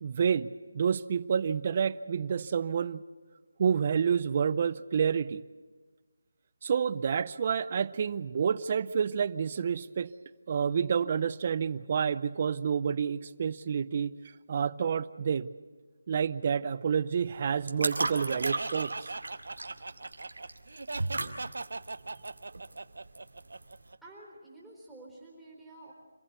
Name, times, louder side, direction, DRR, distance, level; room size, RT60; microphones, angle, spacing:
voice 1, 0.0-3.0 3.6-5.4 6.6-10.1 10.5-14.2 14.5-15.5 16.1-19.1, right 7 dB, 35° right, 18 dB, 0.6 m, -29 dB
sound 1, 17.1-23.9, right 2 dB, 90° right, 2.3 m, -37 dB
Laughter, 18.3-24.0, right 3 dB, 70° right, 0.7 m, -39 dB
voice 2, 24.0-25.9, right 2 dB, ahead, -7 dB, 4.2 m, -50 dB
27.0 x 15.5 x 8.2 m, 1.5 s
figure-of-eight pair, 165°, 0 cm